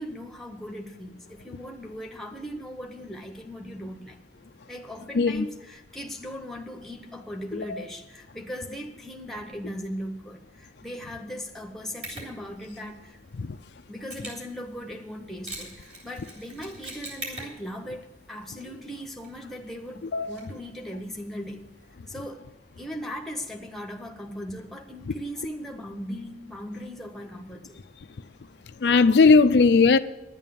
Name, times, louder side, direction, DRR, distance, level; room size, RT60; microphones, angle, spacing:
voice 1, 0.0-4.2 4.7-13.2 13.9-21.6 22.1-22.4 22.8-27.8, equal, ahead, 1.0 m, -38 dB
Mechanisms, 12.0-21.9, right 2 dB, 35° right, 3.1 m, -45 dB
voice 2, 28.8-30.0, left 4 dB, 70° left, 0.4 m, -18 dB
10.5 x 9.1 x 7.1 m
head